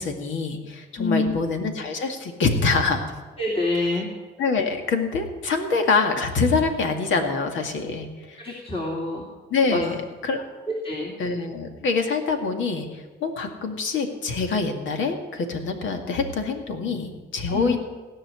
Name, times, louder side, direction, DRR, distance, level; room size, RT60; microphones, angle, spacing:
voice 1, 0.0-3.1 3.8-4.0 4.4-8.4 9.5-10.0 10.2-10.4 11.2-17.8, left 4 dB, 75° left, 4 dB, 2.1 m, -25 dB
voice 2, 1.0-1.3 3.4-4.1 8.4-9.3 9.7-9.8 10.8-11.1 17.4-17.8, left 2 dB, 30° left, -2 dB, 2.5 m, -26 dB
17.0 x 5.8 x 9.8 m, 1.3 s
cardioid pair, 90°, 20 cm